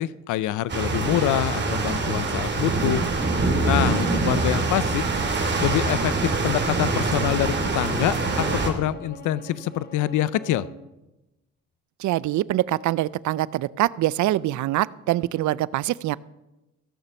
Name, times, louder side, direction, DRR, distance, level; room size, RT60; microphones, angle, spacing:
voice 1, 0.0-3.0 3.6-5.0 5.6-10.7, left 13 dB, 80° left, 18 dB, 0.5 m, -25 dB
sound 1, 0.7-8.7, right 3 dB, 35° right, 2.5 m, -24 dB
Bowed string instrument, 5.7-10.8, equal, 35° left, 2.6 m, -43 dB
voice 2, 12.0-16.2, right 15 dB, 70° right, 21 dB, 0.5 m, -24 dB
15.5 x 6.8 x 7.0 m, 0.99 s
cardioid pair, 90°, 30 cm